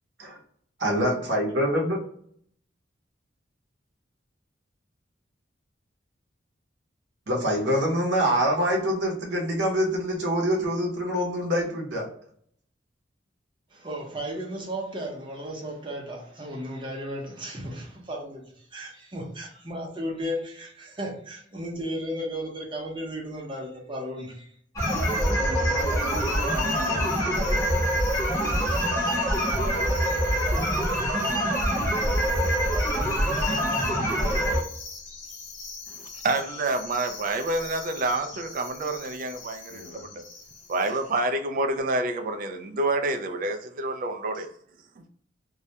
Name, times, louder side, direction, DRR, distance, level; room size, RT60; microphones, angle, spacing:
voice 1, 0.8-2.0 7.3-12.1, equal, 75° right, 0.7 m, -25 dB
voice 2, 13.7-24.5, equal, 25° right, 0.7 m, -35 dB
sound 1, 24.8-41.2, left 4 dB, 90° left, 0.8 m, -42 dB
sound 2, 24.8-34.6, equal, 15° left, 0.7 m, -25 dB
voice 3, 25.2-28.7 39.7-40.2, left 2 dB, 65° left, 0.4 m, -41 dB
voice 4, 35.9-40.2 40.7-44.5, right 2 dB, 50° right, 0.3 m, -28 dB
2.3 x 2.1 x 2.7 m
head